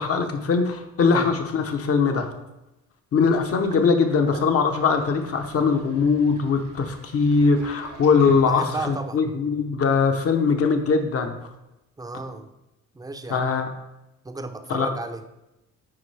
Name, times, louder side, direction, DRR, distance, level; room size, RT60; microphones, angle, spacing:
voice 1, 0.0-2.3 3.1-11.3 13.3-13.7 14.7-14.9, left 5 dB, 50° left, 5 dB, 1.0 m, -21 dB
Sink (filling or washing), 3.4-9.0, right 3 dB, 80° right, 1.9 m, -45 dB
voice 2, 8.4-9.2 12.0-12.5 12.9-13.6 14.2-15.2, right 2 dB, 10° right, 8 dB, 0.6 m, -34 dB
9.7 x 4.4 x 3.4 m, 0.94 s
cardioid pair, 90°, 30 cm